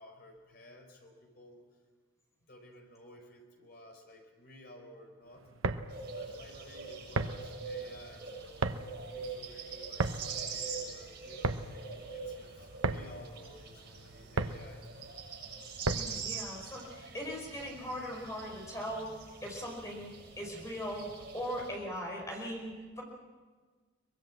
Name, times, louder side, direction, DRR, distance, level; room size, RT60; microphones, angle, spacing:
voice 1, 0.0-1.6 2.5-5.5 6.1-11.8 12.1-14.9, left 1 dB, 50° left, 3 dB, 4.7 m, -54 dB
sound 1, 5.4-16.3, right 3 dB, 90° right, 1.0 m, -37 dB
sound 2, 5.9-21.7, right 5 dB, 50° right, 7.8 m, -44 dB
voice 2, 15.9-19.1 19.4-20.1 20.4-23.0, equal, 15° left, 0 dB, 5.1 m, -39 dB
23.5 x 21.0 x 7.5 m, 1.4 s
head